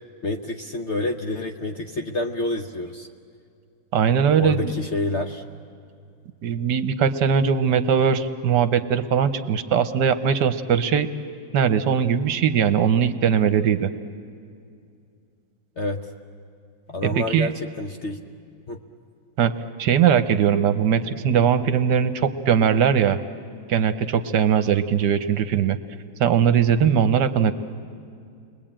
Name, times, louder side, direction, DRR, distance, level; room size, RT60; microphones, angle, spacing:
voice 1, 0.2-3.1 4.4-5.4 15.8-16.1 16.9-17.5 17.8-18.2 18.7-18.8, left 2 dB, 50° left, 5 dB, 0.9 m, -28 dB
voice 2, 3.9-4.7 6.4-11.1 11.5-13.9 17.0-17.5 19.4-19.5 19.8-23.2 23.7-25.8 26.2-27.5, right 8 dB, 65° right, 11 dB, 1.4 m, -20 dB
30.0 x 22.0 x 8.8 m, 2.4 s
omnidirectional pair, 2.1 m